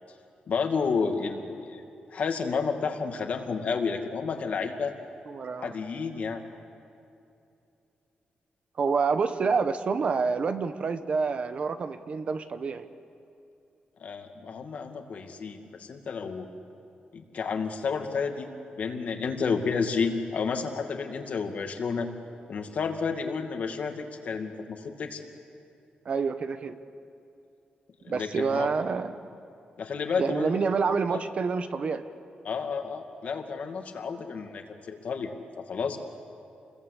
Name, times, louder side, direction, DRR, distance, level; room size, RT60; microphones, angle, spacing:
voice 1, 0.5-1.8 2.1-4.9 5.6-6.4 14.0-16.5 17.1-18.5 18.8-22.1 22.5-25.2 28.0-28.7 29.8-30.6 31.1-31.2 32.4-35.3 35.7-36.0, left 5 dB, 50° left, 4 dB, 2.3 m, -31 dB
voice 2, 5.3-5.7 8.8-12.9 26.0-26.8 28.1-29.2 30.2-32.0, right 5 dB, 45° right, 10 dB, 1.0 m, -27 dB
28.5 x 22.0 x 8.4 m, 2.7 s
wide cardioid pair, 170°, 3 cm